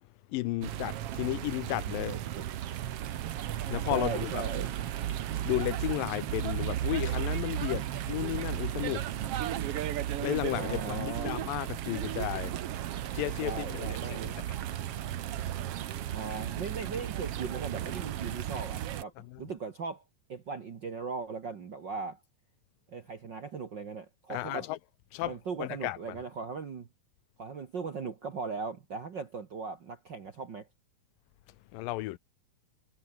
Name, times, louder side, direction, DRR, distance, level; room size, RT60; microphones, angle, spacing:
voice 1, 0.3-2.1 3.7-4.4 5.5-9.1 10.2-12.5 13.1-14.0 19.3-19.4 24.3-24.8 25.1-25.3 25.6-26.0 31.7-32.2, left 17 dB, 80° left, 2.3 m, -33 dB
sound 1, 0.6-19.0, right 12 dB, 70° right, 1.4 m, -34 dB
voice 2, 2.0-2.4 3.9-4.7 10.6-11.4 13.4-14.4 16.1-20.0 20.3-22.2 22.9-24.7 25.2-26.9 27.4-30.7, right 5 dB, 50° right, 1.3 m, -38 dB
omnidirectional pair, 4.1 m